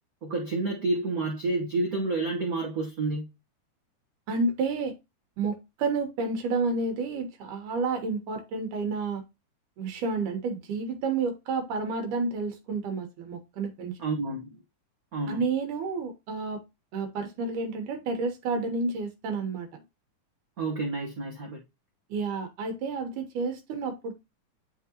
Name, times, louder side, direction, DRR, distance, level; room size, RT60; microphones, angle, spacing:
voice 1, 0.2-3.3 14.0-14.4 15.1-15.4 20.6-21.6, right 2 dB, 60° right, 0.9 m, -29 dB
voice 2, 4.3-4.9 5.4-9.2 9.8-14.0 15.3-16.6 16.9-19.7 22.1-24.1, right 4 dB, 90° right, 2.7 m, -30 dB
10.5 x 3.6 x 2.9 m
omnidirectional pair, 3.5 m